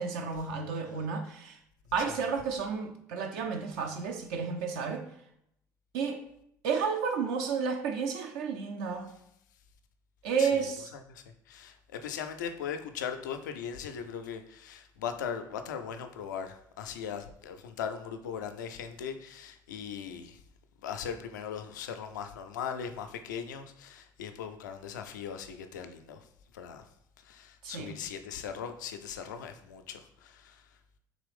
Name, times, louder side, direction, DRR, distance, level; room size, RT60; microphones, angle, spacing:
voice 1, 0.0-1.6 1.9-5.0 5.9-6.2 6.6-9.1 10.2-10.9 27.6-28.0, right 5 dB, 65° right, 0.5 m, -31 dB
voice 2, 11.1-20.4 20.8-26.3 26.5-26.8 27.2-30.6, left 7 dB, 80° left, 0.4 m, -39 dB
3.8 x 3.0 x 3.3 m
figure-of-eight pair, 60°, 10 cm